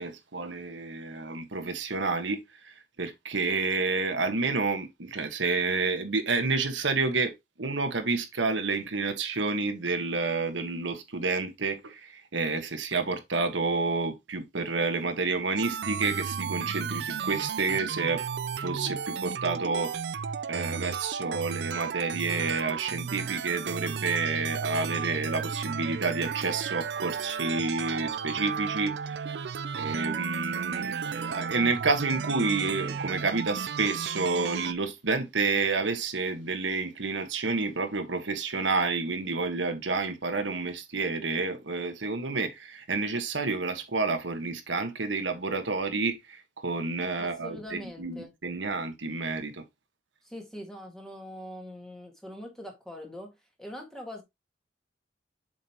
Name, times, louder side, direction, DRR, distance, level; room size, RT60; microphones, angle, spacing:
voice 1, 0.0-7.3 7.6-18.2 18.6-19.9 20.5-29.4 29.8-49.6, right 3 dB, 85° right, 1.3 m, -29 dB
sound 1, 15.6-34.7, right 6 dB, 60° right, 0.4 m, -34 dB
voice 2, 47.2-48.3 50.2-54.2, left 1 dB, 5° left, 1.7 m, -42 dB
7.4 x 5.2 x 2.9 m
head